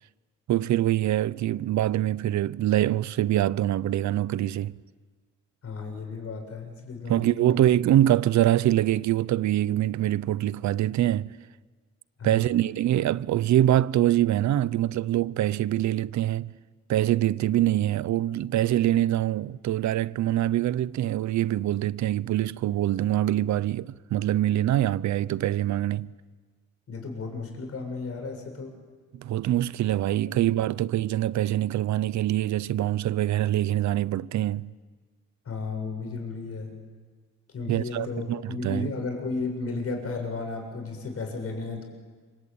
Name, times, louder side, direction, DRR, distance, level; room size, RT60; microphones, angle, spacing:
voice 1, 0.5-4.7 7.1-11.3 12.2-16.5 16.9-26.1 29.1-34.7 37.7-38.9, right 13 dB, 70° right, 0.8 m, -24 dB
voice 2, 5.6-7.6 12.2-12.6 26.9-28.7 35.5-36.7 37.5-41.8, left 4 dB, 50° left, 7.2 m, -34 dB
27.0 x 24.5 x 8.9 m
cardioid pair, 90°, 30 cm